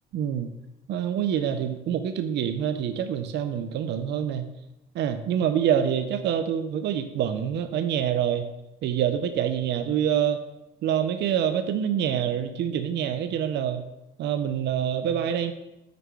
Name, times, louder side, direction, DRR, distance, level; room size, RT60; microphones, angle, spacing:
voice 1, 0.1-0.5 0.9-4.5 4.9-8.5 8.8-10.4 10.8-13.8 14.2-15.5, right 9 dB, 65° right, 8 dB, 0.5 m, -26 dB
5.8 x 4.7 x 3.7 m, 0.92 s
supercardioid pair, 80°, 19 cm